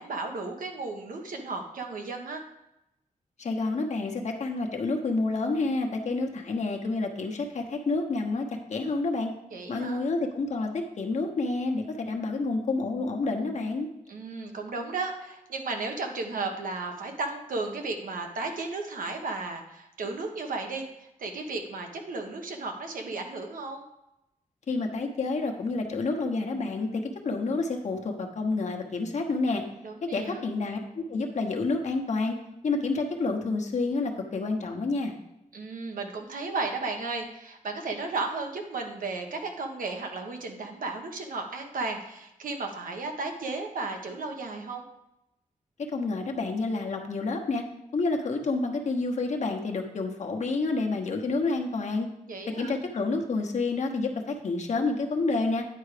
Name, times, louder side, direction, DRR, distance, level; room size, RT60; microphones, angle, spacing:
voice 1, 0.0-2.4 9.5-10.0 14.1-23.8 29.8-30.4 35.5-44.8 52.3-52.8, right 3 dB, 85° right, 3 dB, 1.2 m, -34 dB
voice 2, 3.4-9.3 9.7-13.9 24.7-29.6 30.1-32.4 32.6-35.1 45.9-47.6 47.9-52.1 52.6-55.6, left 3 dB, 60° left, 2 dB, 1.1 m, -29 dB
9.5 x 4.6 x 5.0 m, 0.86 s
wide cardioid pair, 155°, 14 cm